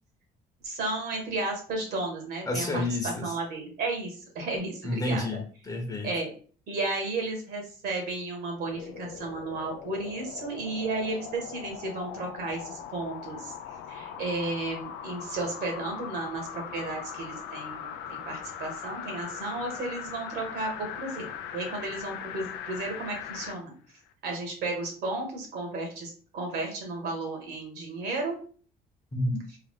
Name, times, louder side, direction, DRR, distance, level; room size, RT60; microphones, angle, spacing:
voice 1, 0.6-5.2 6.0-6.3 6.7-21.3 21.5-23.7 24.2-28.4, right 2 dB, 70° right, 2 dB, 1.6 m, -33 dB
voice 2, 2.4-3.3 4.8-6.1 29.1-29.4, left 2 dB, 20° left, 3 dB, 0.9 m, -30 dB
sound 1, 8.6-23.6 24.1-24.2, left 8 dB, 90° left, 0.4 m, -40 dB
3.7 x 2.4 x 3.6 m, 0.42 s
cardioid pair, 110°, 17 cm